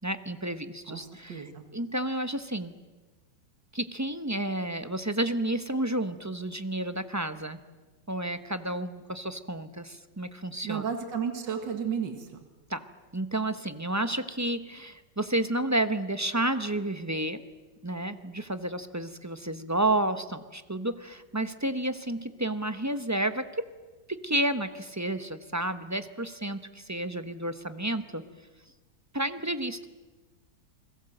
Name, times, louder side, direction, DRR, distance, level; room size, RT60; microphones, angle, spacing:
voice 1, 0.0-2.7 3.7-7.6 8.1-10.8 12.7-12.8 13.1-17.4 17.8-23.7 24.1-28.2 29.1-29.9, right 1 dB, 15° right, 10 dB, 0.7 m, -31 dB
voice 2, 1.3-1.6 10.6-12.3, right 7 dB, 75° right, 6 dB, 2.6 m, -32 dB
29.0 x 21.0 x 7.9 m, 1.2 s
omnidirectional pair, 2.0 m